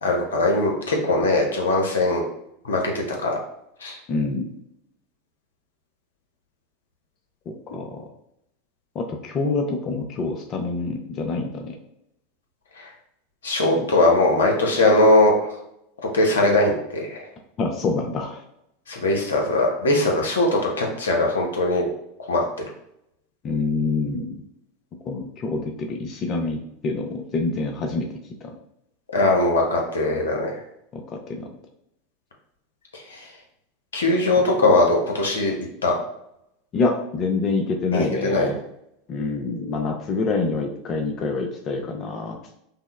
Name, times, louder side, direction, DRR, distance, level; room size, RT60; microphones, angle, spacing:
voice 1, 0.0-2.2 2.6-3.4 3.8-4.0 12.8-12.9 13.4-15.5 16.1-17.2 18.9-21.9 22.3-22.4 29.1-30.5 33.1-33.2 33.9-35.5 35.8-35.9 37.9-38.5, left 2 dB, 75° left, 1 dB, 0.7 m, -20 dB
voice 2, 4.1-4.6 7.7-8.0 9.0-11.8 13.8-13.9 17.6-18.4 23.4-24.4 25.1-28.1 28.4-28.5 30.9-31.0 31.3-31.5 36.7-38.6 39.1-42.4, left 3 dB, 40° left, 2 dB, 0.5 m, -26 dB
5.3 x 2.0 x 2.2 m, 0.78 s
figure-of-eight pair, 85°, 0 cm